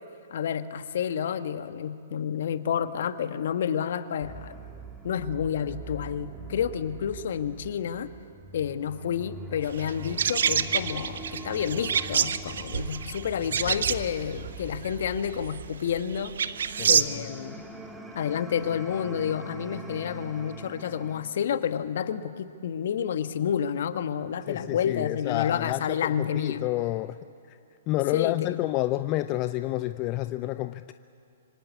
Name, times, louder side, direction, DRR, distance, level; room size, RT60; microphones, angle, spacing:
voice 1, 0.3-4.5 5.0-8.1 8.5-16.3 16.9-17.6 18.1-26.6 28.1-28.6, left 8 dB, 60° left, 10 dB, 1.4 m, -30 dB
sound 1, 4.2-21.2, right 2 dB, 5° right, 2.1 m, -43 dB
sound 2, 9.7-17.0, right 7 dB, 65° right, 1.0 m, -28 dB
voice 2, 24.5-27.2 27.5-27.6 27.9-30.9, left 17 dB, 35° left, 12 dB, 0.6 m, -29 dB
26.0 x 25.0 x 8.4 m, 2.5 s
figure-of-eight pair, 120°, 0 cm